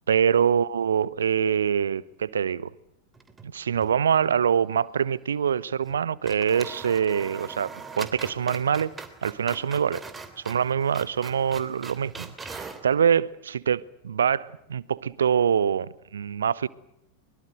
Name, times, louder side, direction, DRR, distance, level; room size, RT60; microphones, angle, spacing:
voice 1, 0.1-2.7 3.4-8.9 9.2-10.0 10.4-16.7, right 7 dB, 65° right, 1.0 m, -24 dB
sound 1, 3.1-4.0 4.2-4.3 5.8-6.0 6.2-12.9, right 4 dB, 15° right, 3.2 m, -41 dB
24.0 x 23.0 x 7.9 m
figure-of-eight pair, 90°, 0 cm